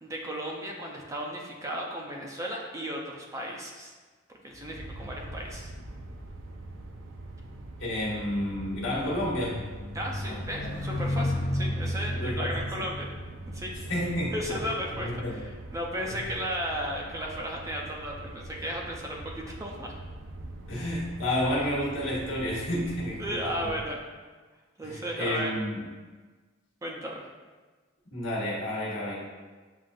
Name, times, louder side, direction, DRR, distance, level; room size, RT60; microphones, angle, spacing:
voice 1, 0.0-3.9 4.4-5.7 9.9-13.1 13.5-13.7 14.3-19.9 23.2-24.2 24.8-25.5 26.8-27.3, equal, 15° right, -1 dB, 0.5 m, -35 dB
sound 1, 4.5-16.1 16.9-17.2, left 1 dB, 45° left, 0.7 m, -36 dB
sound 2, 4.8-23.9, right 2 dB, 90° right, 0.4 m, -44 dB
voice 2, 7.8-9.7 10.2-10.7 11.6-11.8 12.1-12.9 13.9-14.4 14.9-15.5 16.1-16.2 20.7-23.7 24.8-25.8 28.1-29.2, left 1 dB, 85° left, -5 dB, 1.3 m, -31 dB
7.3 x 2.4 x 2.5 m, 1.4 s
head